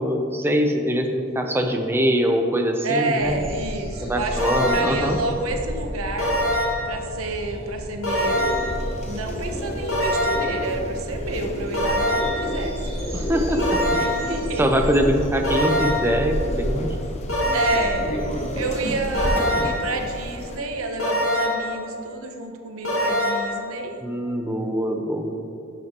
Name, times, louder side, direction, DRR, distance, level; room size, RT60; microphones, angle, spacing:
voice 1, 0.0-3.4 4.0-5.2 13.1-13.8 14.2-14.3 14.6-17.0 24.0-25.4, equal, 10° right, 3 dB, 0.5 m, -23 dB
voice 2, 2.8-6.3 6.9-8.5 9.1-12.8 13.1-13.2 13.9-14.6 17.5-18.1 18.5-23.9, right 3 dB, 90° right, 4 dB, 0.9 m, -29 dB
sound 1, 3.2-18.6, equal, 30° right, 1.6 m, -32 dB
sound 2, 4.4-5.1 6.2-6.9 8.0-8.8 9.9-10.6 11.7-12.5 13.6-14.3 15.4-16.2 17.3-18.0 19.1-19.9 21.0-21.7 22.8-23.6, left 1 dB, 75° left, 1.9 m, -23 dB
sound 3, 8.2-20.6, equal, 35° left, 0.7 m, -32 dB
11.5 x 6.1 x 2.9 m, 2.8 s
head